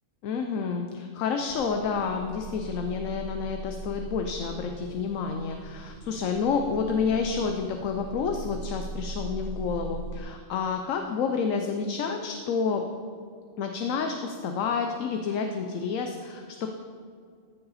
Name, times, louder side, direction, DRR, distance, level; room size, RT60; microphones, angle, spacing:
voice 1, 0.2-12.8 13.6-16.7, left 5 dB, 80° left, 5 dB, 1.0 m, -29 dB
sound 1, 1.5-10.2, right 2 dB, 60° right, 0.8 m, -40 dB
14.5 x 6.8 x 4.1 m, 2.2 s
omnidirectional pair, 1.3 m